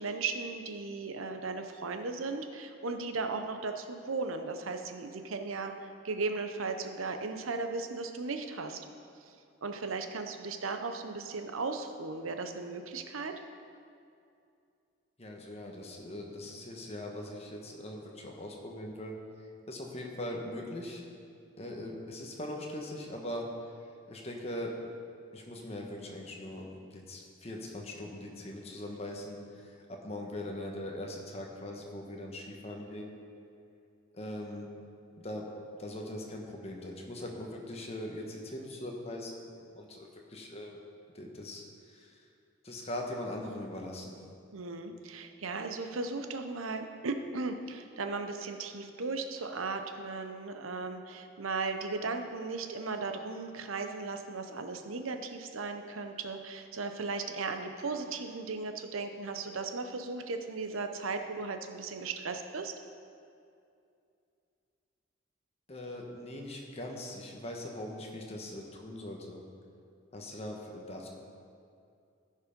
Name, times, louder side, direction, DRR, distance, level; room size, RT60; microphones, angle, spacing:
voice 1, 0.0-8.8 9.6-13.3 44.5-62.7, right 3 dB, 90° right, 6 dB, 0.8 m, -36 dB
voice 2, 15.2-21.0 21.6-23.5 24.1-24.8 25.3-33.1 34.1-34.7 35.2-35.5 35.8-40.8 41.1-42.2 42.6-44.2 65.7-69.4 70.1-71.1, left 1 dB, 30° left, 0 dB, 1.2 m, -41 dB
14.5 x 5.5 x 5.2 m, 2.5 s
head